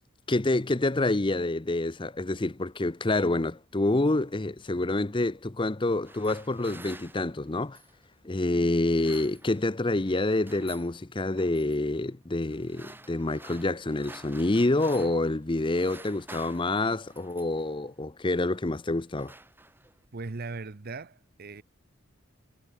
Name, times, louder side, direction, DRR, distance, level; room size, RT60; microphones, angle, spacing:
voice 1, 0.3-7.8 8.2-19.3, left 2 dB, 25° left, 0.7 m, -27 dB
sound 1, 5.8-8.0 8.7-9.8 10.0-10.9 11.4-11.8 12.5-15.3 15.6-17.7 18.4-18.7 19.0-20.0, right 2 dB, 10° right, 6.2 m, -50 dB
voice 2, 20.1-21.6, right 3 dB, 45° right, 0.8 m, -38 dB
head